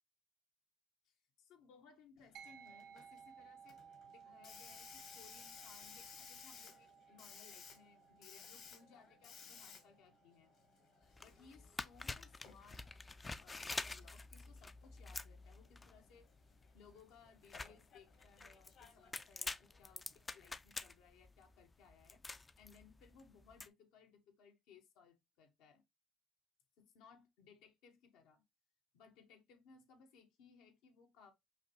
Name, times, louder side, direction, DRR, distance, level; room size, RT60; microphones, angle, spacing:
voice 1, 1.0-3.8 4.0-10.5 11.2-12.8 13.2-16.3 16.7-22.2 22.6-25.8 26.8-28.4 28.9-31.3, left 6 dB, 85° left, 1.1 m, -64 dB
Hiss, 2.2-20.6, left 6 dB, 65° left, 1.2 m, -60 dB
sound 1, 2.3-12.1, right 7 dB, 75° right, 0.9 m, -61 dB
sound 2, 11.0-23.7, left 3 dB, 20° left, 0.3 m, -48 dB
5.5 x 2.3 x 3.0 m
cardioid pair, 95°, 0 cm